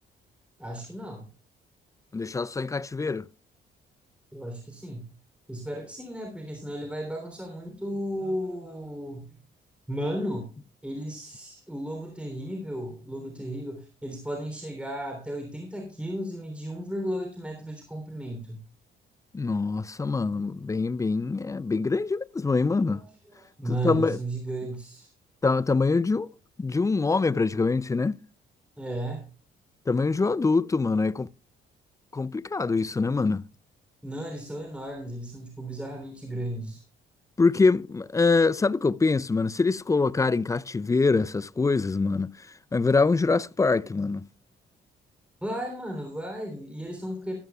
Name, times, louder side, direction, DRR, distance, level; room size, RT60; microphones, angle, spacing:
voice 1, 0.6-1.3 4.3-5.1 5.5-9.2 9.9-10.5 10.8-18.6 22.7-23.0 23.3-25.1 28.8-29.3 34.0-36.8 45.4-47.4, right 1 dB, 5° right, 3.2 m, -34 dB
voice 2, 2.1-3.3 19.3-23.0 23.7-24.2 25.4-26.3 26.6-28.2 29.9-31.3 32.1-33.5 37.4-44.3, left 4 dB, 15° left, 0.4 m, -24 dB
14.0 x 12.5 x 2.3 m
cardioid pair, 90°, 20 cm